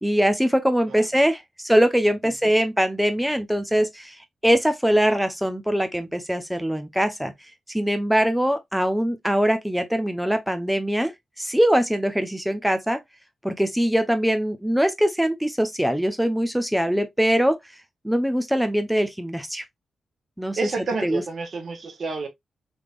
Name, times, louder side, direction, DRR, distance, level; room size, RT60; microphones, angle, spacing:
voice 1, 0.0-4.2 4.4-7.3 7.7-11.1 11.4-13.0 13.4-17.6 18.0-19.6 20.4-20.6 21.0-21.2, equal, 5° right, 0.7 m, -22 dB
voice 2, 20.6-22.3, right 4 dB, 60° right, 1.2 m, -30 dB
3.4 x 3.3 x 2.4 m
supercardioid pair, 40°, 0 cm